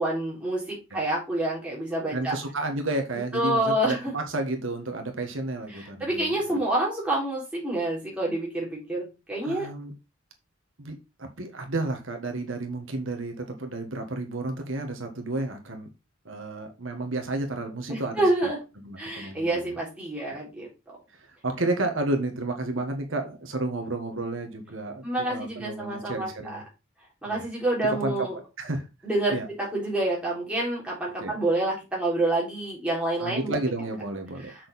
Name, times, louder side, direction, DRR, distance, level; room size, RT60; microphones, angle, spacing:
voice 1, 0.0-2.4 3.3-4.1 5.7-9.7 17.9-18.6 19.0-20.7 25.0-26.6 27.2-28.4 29.0-33.5 34.4-34.7, right 1 dB, 5° right, -5 dB, 3.7 m, -28 dB
voice 2, 2.1-6.6 9.4-9.9 10.8-15.9 16.2-18.5 18.8-19.8 21.2-26.6 27.3-27.4 28.0-28.1 28.6-28.9 29.3-29.5 31.2-31.3 33.2-34.7, right 2 dB, 75° right, 4 dB, 1.5 m, -32 dB
6.5 x 6.2 x 4.2 m, 0.27 s
head